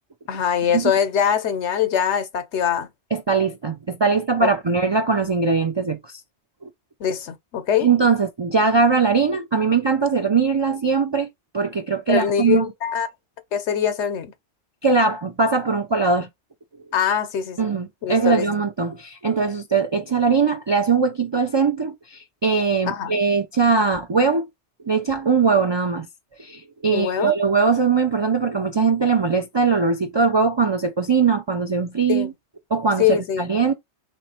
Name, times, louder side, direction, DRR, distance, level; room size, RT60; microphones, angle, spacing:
voice 1, 0.3-2.9 4.4-4.8 7.0-7.9 12.1-13.1 13.5-14.3 16.9-17.7 18.0-18.5 22.9-23.2 26.9-27.4 32.1-32.3 33.0-33.5, left 9 dB, 80° left, 1.0 m, -23 dB
voice 2, 3.1-6.2 6.6-6.7 7.8-11.3 11.5-12.7 14.8-16.3 17.6-24.5 24.8-26.1 26.4-32.3 32.7-33.7, right 5 dB, 45° right, 0.3 m, -21 dB
3.1 x 3.1 x 4.1 m
omnidirectional pair, 1.2 m